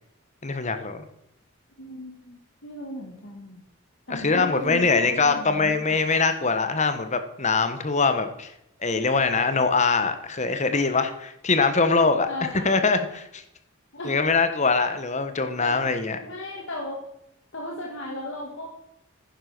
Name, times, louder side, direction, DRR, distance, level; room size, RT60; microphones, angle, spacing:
voice 1, 0.4-1.0 4.1-8.5 8.8-12.3 12.6-13.4 14.0-16.2, left 4 dB, 30° left, 9 dB, 1.1 m, -23 dB
voice 2, 1.8-3.6 4.1-6.0 12.3-12.8 13.9-14.2 15.4-15.8 16.2-17.0 17.5-18.7, left 1 dB, 55° left, 0 dB, 2.0 m, -36 dB
10.5 x 9.9 x 6.0 m, 0.81 s
head